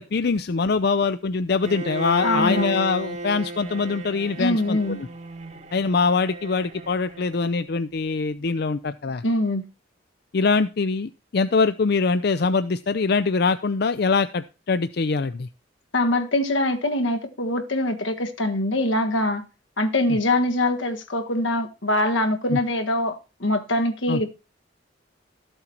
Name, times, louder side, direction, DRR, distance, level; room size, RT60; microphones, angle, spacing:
voice 1, 0.0-5.1 5.7-9.2 10.3-15.5 20.1-20.2 22.5-22.6 24.1-24.2, left 4 dB, 55° left, 0.5 m, -23 dB
Bowed string instrument, 1.6-7.6, right 3 dB, 35° right, 1.1 m, -34 dB
voice 2, 2.2-2.8 4.4-5.0 9.2-9.6 15.9-19.4 19.8-24.4, left 1 dB, 85° left, 1.6 m, -23 dB
13.5 x 7.9 x 4.4 m
head